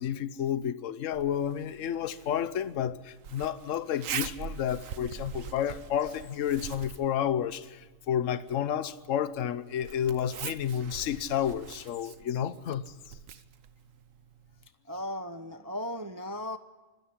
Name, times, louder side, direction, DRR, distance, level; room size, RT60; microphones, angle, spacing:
voice 1, 0.0-12.8, left 9 dB, 70° left, 1.2 m, -31 dB
Zipper (clothing), 1.1-14.7, right 8 dB, 75° right, 1.3 m, -44 dB
voice 2, 14.9-16.6, left 1 dB, 20° right, 0.7 m, -36 dB
25.5 x 13.5 x 10.0 m
omnidirectional pair, 1.4 m